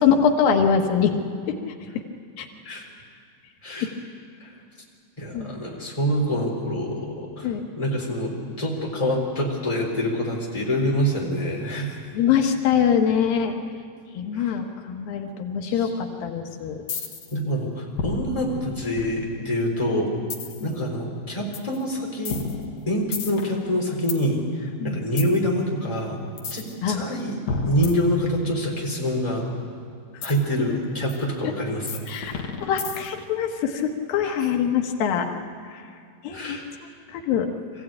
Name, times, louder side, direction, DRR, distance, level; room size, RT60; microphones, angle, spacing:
voice 1, 0.0-1.2 2.4-2.5 3.8-3.9 5.3-5.5 7.4-7.6 12.1-13.5 14.1-16.8 20.6-20.7 24.8-25.0 26.8-27.1 31.4-31.5 32.1-32.3 32.6-35.3 35.7-35.8 36.2-36.6 37.1-37.5, left 7 dB, 90° left, 4 dB, 3.1 m, -23 dB
voice 2, 5.2-8.3 8.6-12.0 14.3-14.5 15.6-15.9 16.9-17.1 17.3-20.1 20.6-22.4 22.9-26.2 26.5-27.4 27.7-29.5 30.2-32.5 36.3-36.6, equal, 10° left, -2 dB, 3.6 m, -26 dB
sound 1, 16.9-17.4 18.0-19.5 20.3-20.7 21.5-21.8 22.2-24.2 25.2-25.4 26.4-26.7 27.5-28.6 30.2-30.4 31.1-31.2 31.9-33.2, left 4 dB, 55° left, 2.5 m, -31 dB
24.0 x 16.0 x 8.9 m, 2.3 s
omnidirectional pair, 4.0 m